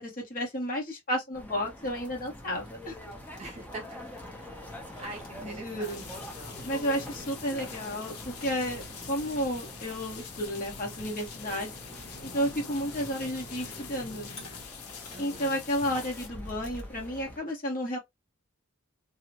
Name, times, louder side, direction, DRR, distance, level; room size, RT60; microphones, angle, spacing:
voice 1, 0.0-2.9 5.4-6.0 6.6-11.7 12.2-14.3 15.2-18.0, equal, 40° left, 1.0 m, -32 dB
sound 1, 1.3-17.4, left 1 dB, 5° left, 0.5 m, -46 dB
Fire, 1.8-16.9, equal, 75° left, 1.3 m, -50 dB
voice 2, 3.4-4.0 5.0-7.1 15.1-15.6, right 2 dB, 30° right, 1.0 m, -44 dB
sound 2, 5.8-16.3, left 7 dB, 90° left, 0.7 m, -45 dB
2.8 x 2.1 x 2.7 m
head